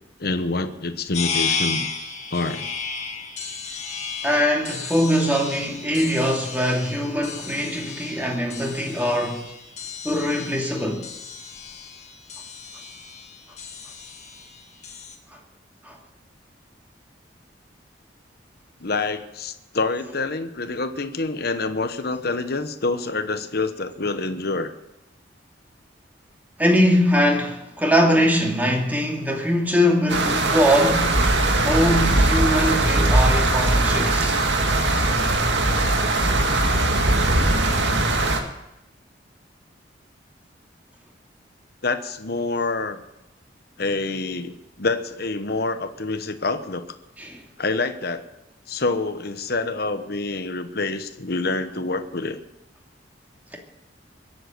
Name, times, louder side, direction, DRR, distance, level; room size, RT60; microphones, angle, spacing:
voice 1, 0.2-1.9 2.3-2.7 18.8-24.7 41.8-43.0 43.8-46.8 47.6-48.2 48.7-52.4, left 3 dB, 55° left, 1.1 m, -26 dB
sound 1, 1.1-15.2, left 5 dB, 40° left, 2.1 m, -33 dB
voice 2, 4.2-9.4 10.0-11.1 15.8-16.0 26.6-31.3 31.6-34.4 47.2-47.4, equal, 10° right, 2.7 m, -22 dB
sound 2, 30.1-38.4, right 2 dB, 75° right, 2.1 m, -20 dB
23.0 x 7.9 x 7.9 m
head